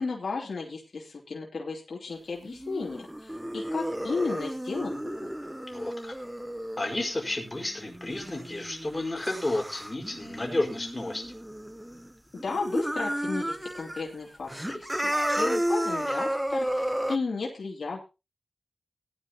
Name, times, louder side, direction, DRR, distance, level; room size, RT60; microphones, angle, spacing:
voice 1, 0.0-5.3 12.3-18.0, left 4 dB, 75° left, -2 dB, 3.0 m, -34 dB
sound 1, 2.4-12.1 12.4-14.0 14.3-17.2, right 1 dB, 10° right, 0.7 m, -32 dB
voice 2, 5.7-6.1 6.8-11.2, left 2 dB, 25° left, 1 dB, 5.3 m, -31 dB
18.0 x 11.0 x 3.0 m, 0.28 s
wide cardioid pair, 70°, 0 cm